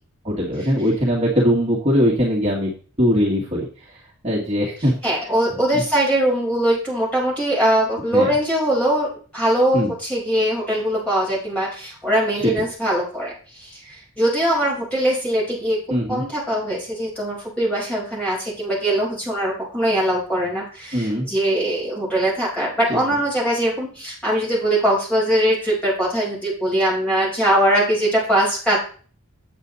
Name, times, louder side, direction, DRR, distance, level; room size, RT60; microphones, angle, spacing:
voice 1, 0.2-2.7 3.0-4.0 4.2-5.1 5.7-5.8 8.1-8.3 9.7-9.9 12.4-12.5 15.9-16.2 20.9-21.3 22.9-23.0, equal, 30° right, -5 dB, 1.9 m, -21 dB
voice 2, 5.0-15.8 16.1-28.8, right 1 dB, 5° left, -5 dB, 5.0 m, -21 dB
8.4 x 8.0 x 4.1 m, 0.40 s
head